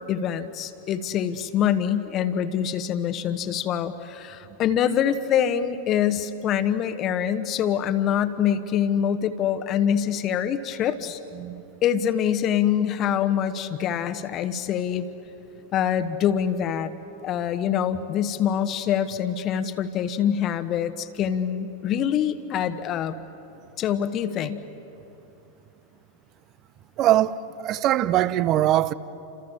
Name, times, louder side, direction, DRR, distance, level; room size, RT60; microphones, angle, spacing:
voice 1, 0.1-11.2 11.8-15.1 15.7-16.9 17.2-23.2 23.8-24.6, left 9 dB, 35° left, 1.2 m, -25 dB
voice 2, 27.0-28.9, right 13 dB, 35° right, 0.8 m, -22 dB
29.5 x 27.0 x 7.4 m
figure-of-eight pair, 90°, 0 cm